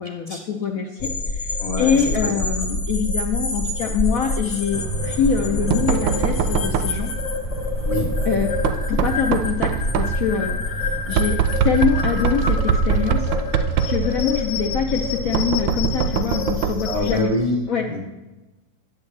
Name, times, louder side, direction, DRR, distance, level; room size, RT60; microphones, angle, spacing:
voice 1, 0.0-7.1 8.3-8.5 8.9-13.3 13.9-17.3 17.7-17.9, left 7 dB, 70° left, 3 dB, 0.8 m, -24 dB
sound 1, 1.0-17.2, left 2 dB, 50° left, 1.0 m, -26 dB
voice 2, 1.6-2.3 7.9-8.1 16.9-18.0, left 1 dB, 25° left, 0 dB, 0.8 m, -25 dB
Knock, 4.7-17.0, right 8 dB, 80° right, 1.3 m, -25 dB
10.5 x 7.4 x 3.2 m, 1.1 s
omnidirectional pair, 2.0 m